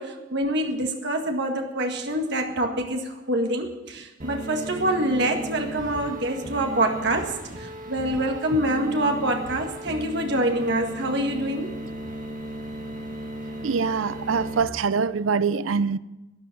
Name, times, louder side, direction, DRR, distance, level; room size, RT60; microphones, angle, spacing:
voice 1, 0.0-7.3 7.6-11.7, right 1 dB, 60° right, 1.8 m, -26 dB
sound 1, 4.2-14.6, right 1 dB, 40° right, 2.1 m, -36 dB
voice 2, 13.6-16.0, right 5 dB, 85° right, 0.5 m, -24 dB
13.0 x 10.0 x 7.8 m
head